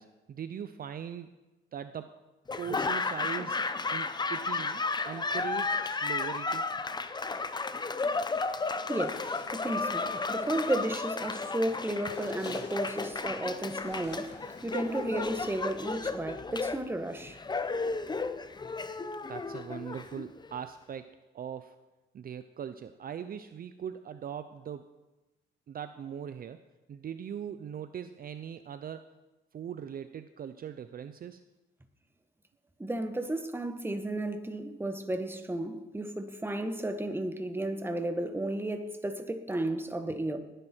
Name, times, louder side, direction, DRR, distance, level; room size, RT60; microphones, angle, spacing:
voice 1, 0.0-1.3 1.7-2.1 2.6-3.6 3.9-6.7 19.3-21.1 21.3-21.8 22.1-24.9 25.7-26.6 26.9-29.1 29.5-31.4, right 8 dB, 50° right, 0.6 m, -40 dB
Laughter / Applause, 2.5-20.6, left 3 dB, 20° left, 0.7 m, -33 dB
sound 1, 6.8-16.0, left 4 dB, 60° left, 2.6 m, -55 dB
voice 2, 8.9-17.4 32.8-40.4, right 1 dB, 10° right, 1.4 m, -33 dB
18.5 x 10.0 x 4.5 m
cardioid pair, 90°, 20 cm